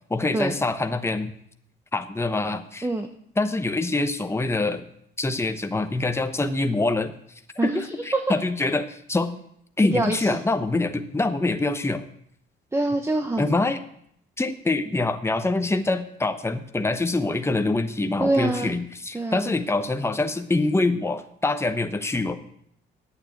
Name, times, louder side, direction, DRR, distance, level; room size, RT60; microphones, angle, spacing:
voice 1, 0.1-1.3 1.9-2.9 3.4-4.8 5.2-7.1 7.6-9.4 9.8-12.0 13.4-13.8 14.4-22.4, left 2 dB, 15° left, 7 dB, 1.1 m, -25 dB
voice 2, 9.9-10.4 12.7-13.6 18.2-18.7 19.1-19.5, right 2 dB, 15° right, 6 dB, 1.0 m, -25 dB
9.7 x 8.8 x 8.6 m, 0.70 s
cardioid pair, 90°, 20 cm